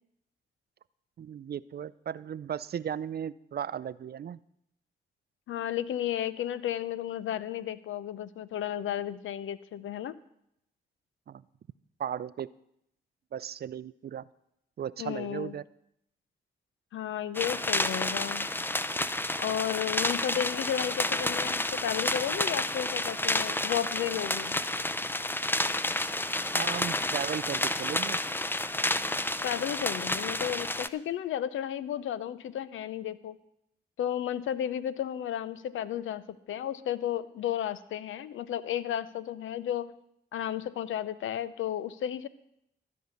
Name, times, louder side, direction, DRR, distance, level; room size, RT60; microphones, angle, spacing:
voice 1, 1.2-4.4 11.3-11.4 12.0-12.5 13.3-14.3 14.8-15.6 26.5-28.2, right 9 dB, 50° right, 19 dB, 0.4 m, -36 dB
voice 2, 5.5-10.2 15.0-15.5 16.9-18.5 19.4-24.6 29.4-33.4 34.0-39.9 40.3-42.3, left 10 dB, 75° left, 16 dB, 0.6 m, -33 dB
sound 1, 17.3-30.9, left 1 dB, 10° left, 0.6 m, -30 dB
13.0 x 5.4 x 8.3 m, 0.77 s
supercardioid pair, 40°, 20 cm